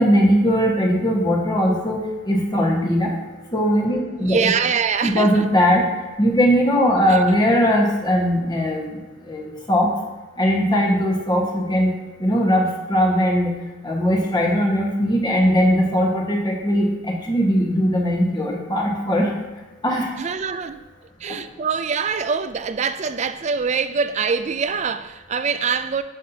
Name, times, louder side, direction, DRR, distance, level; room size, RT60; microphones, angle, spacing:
voice 1, 0.0-2.0 2.3-3.1 3.5-4.5 5.0-5.9 6.2-9.0 9.3-9.9 10.4-11.9 12.2-13.5 13.8-19.3 19.8-20.1, equal, 25° left, 1.5 m, -19 dB
voice 2, 4.2-5.5 7.1-7.2 20.2-20.8 21.2-26.0, right 5 dB, 40° right, 0.4 m, -24 dB
12.5 x 5.7 x 2.8 m
head